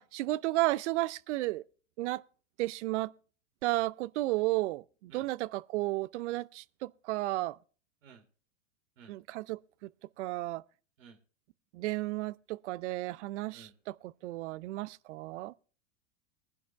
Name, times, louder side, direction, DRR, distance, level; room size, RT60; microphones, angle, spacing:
voice 1, 0.0-1.6 2.0-2.2 2.6-3.1 3.6-7.6 9.1-9.9 10.2-10.6 11.7-15.5, right 18 dB, 65° right, 0.6 m, -33 dB
voice 2, 5.1-5.3 8.0-8.2 9.0-9.1 11.0-11.2 13.5-13.7, right 6 dB, 80° right, 2.9 m, -54 dB
23.5 x 10.5 x 2.3 m
hypercardioid pair, 115°, 38 cm